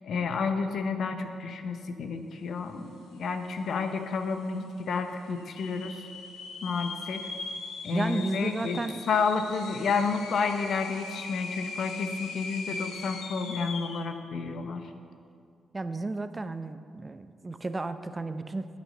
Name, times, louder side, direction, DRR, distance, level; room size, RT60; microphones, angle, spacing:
voice 1, 0.0-6.0 6.6-7.2 7.8-14.9, left 5 dB, 70° left, 7 dB, 0.9 m, -30 dB
sound 1, 3.2-3.3 3.5-4.0 4.5-4.6 5.4-14.1, left 4 dB, 85° left, 1.1 m, -40 dB
voice 2, 7.9-9.0 15.7-18.7, right 2 dB, 30° right, 11 dB, 0.6 m, -33 dB
9.5 x 8.5 x 6.5 m, 2.3 s
supercardioid pair, 60°, 0 cm